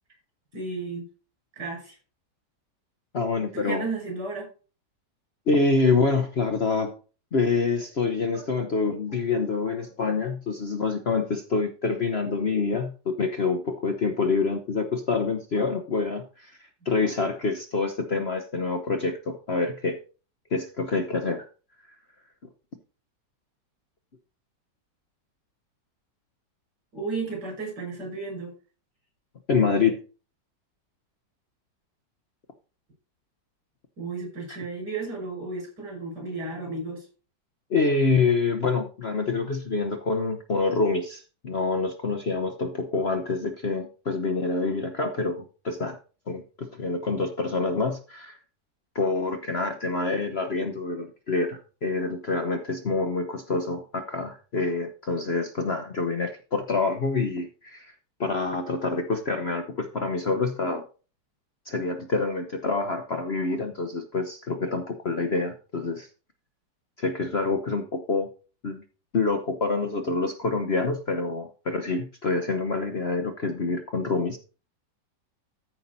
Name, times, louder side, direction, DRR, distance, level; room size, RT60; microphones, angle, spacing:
voice 1, 0.5-1.0 1.6-2.0 3.5-4.5 8.3-8.5 9.1-9.2 9.7-9.9 26.9-28.5 34.0-37.1, right 3 dB, 65° right, 0 dB, 6.6 m, -33 dB
voice 2, 3.1-3.8 5.5-7.0 7.3-16.6 16.8-20.0 20.5-21.5 29.5-30.0 37.7-46.0 46.3-48.4 48.9-57.9 58.2-60.9 61.6-66.1 67.0-68.3 68.6-68.8 69.1-74.4, left 4 dB, 45° left, 6 dB, 1.0 m, -26 dB
14.0 x 5.6 x 4.0 m, 0.34 s
omnidirectional pair, 1.9 m